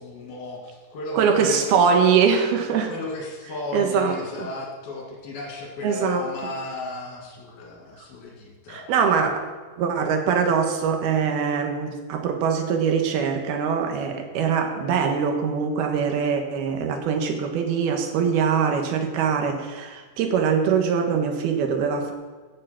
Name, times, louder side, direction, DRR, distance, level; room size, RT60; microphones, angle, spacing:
voice 1, 0.0-1.8 2.9-8.9, left 2 dB, 65° left, -2 dB, 4.1 m, -35 dB
voice 2, 1.1-2.9 3.7-4.5 5.8-6.2 8.7-9.5 9.8-22.1, right 6 dB, 70° right, 4 dB, 3.2 m, -23 dB
16.5 x 7.6 x 5.9 m, 1.4 s
omnidirectional pair, 4.8 m